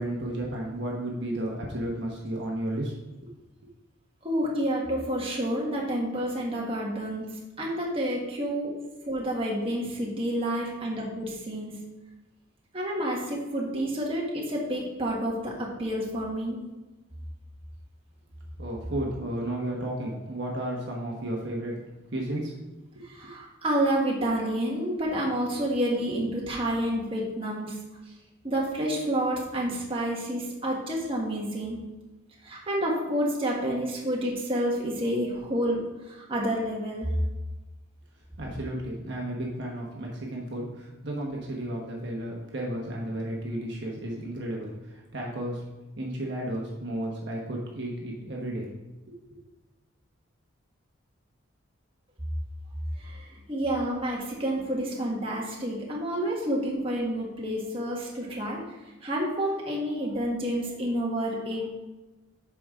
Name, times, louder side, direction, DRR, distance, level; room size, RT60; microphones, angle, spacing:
voice 1, 0.0-3.3 18.6-21.7 22.1-22.5 22.9-23.1 38.4-45.6 46.0-48.7 49.1-49.2, right 1 dB, 55° right, -2 dB, 1.3 m, -33 dB
voice 2, 4.2-7.3 7.6-8.7 9.1-11.8 12.7-16.6 23.0-27.8 28.4-31.8 32.4-37.1 53.0-58.8 59.0-61.7, right 1 dB, 25° right, -3 dB, 1.6 m, -29 dB
8.5 x 6.1 x 3.7 m, 1.1 s
head